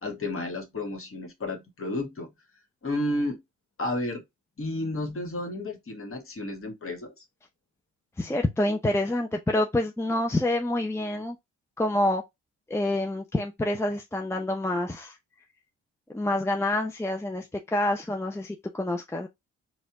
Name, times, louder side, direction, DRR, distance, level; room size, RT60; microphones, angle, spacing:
voice 1, 0.0-2.3 2.8-3.4 3.8-4.2 4.6-7.1, left 1 dB, 35° left, 1.6 m, -32 dB
voice 2, 8.2-11.4 11.8-12.2 12.7-15.2 16.1-19.3, left 1 dB, 5° left, 0.7 m, -27 dB
4.2 x 2.4 x 3.6 m
hypercardioid pair, 50°, 37 cm